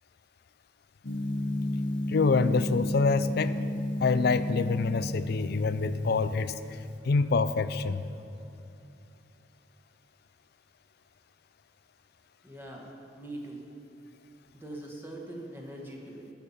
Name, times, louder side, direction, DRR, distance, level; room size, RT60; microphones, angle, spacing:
Gong, 1.0-6.9, left 1 dB, 85° left, 1.3 m, -33 dB
voice 1, 2.1-3.6 4.0-6.5 7.0-8.0, left 4 dB, 60° left, 13 dB, 0.4 m, -26 dB
voice 2, 12.4-13.6 14.5-16.3, right 1 dB, 10° right, -1 dB, 1.4 m, -42 dB
20.5 x 6.8 x 4.2 m, 2.7 s
head